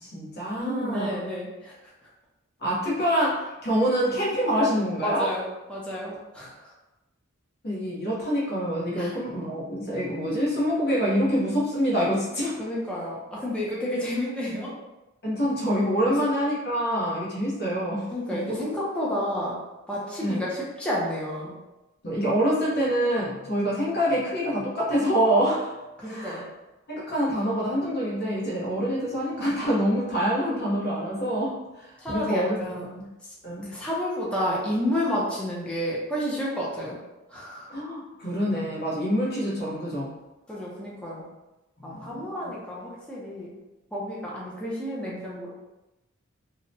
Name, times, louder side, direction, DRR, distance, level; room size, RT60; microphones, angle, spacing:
voice 1, 0.0-1.1 2.6-5.3 7.6-12.6 15.2-18.6 20.2-20.4 22.0-25.7 26.0-26.4 26.9-31.5 32.1-32.6 33.0-33.1 33.4-33.7 37.7-40.1 41.8-42.5, equal, 50° left, -6 dB, 0.9 m, -26 dB
voice 2, 0.6-1.8 5.0-6.5 9.0-9.1 12.6-14.7 16.1-16.2 18.1-19.6 19.9-21.5 26.0-26.5 32.0-32.9 33.6-37.0 37.3-37.7 40.5-41.3 41.8-43.5 43.9-45.5, equal, 5° left, -6 dB, 0.5 m, -30 dB
2.8 x 2.1 x 2.6 m, 1.0 s
head